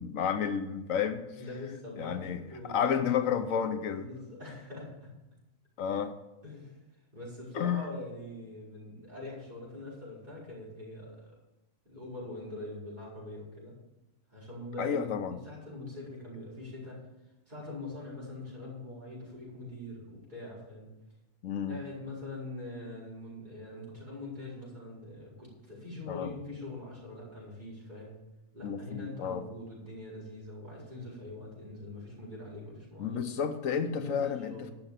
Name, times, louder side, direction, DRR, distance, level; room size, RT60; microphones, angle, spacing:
voice 1, 0.0-1.2 2.0-4.1 5.8-6.1 7.5-7.9 14.8-15.4 21.4-21.8 26.1-26.3 28.6-29.4 33.0-34.7, left 7 dB, 80° left, 9 dB, 1.3 m, -31 dB
voice 2, 1.4-3.1 3.9-5.1 6.4-6.8 7.1-11.4 11.9-13.8 14.3-17.0 17.5-20.9 21.7-28.1 28.5-33.2 34.0-34.7, left 2 dB, 35° right, -7 dB, 5.4 m, -43 dB
12.0 x 6.8 x 7.4 m, 0.95 s
omnidirectional pair, 1.4 m